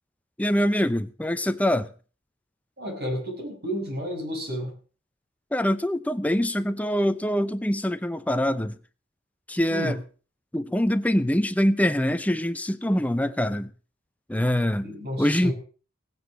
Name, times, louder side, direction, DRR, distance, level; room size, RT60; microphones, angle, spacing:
voice 1, 0.4-1.9 5.5-8.8 9.5-10.0 10.5-13.7 14.3-14.9 15.2-15.5, equal, 5° left, 0.7 m, -24 dB
voice 2, 2.8-4.8 9.7-10.0 14.8-15.5, equal, 50° right, 6.0 m, -31 dB
16.5 x 9.6 x 6.2 m
head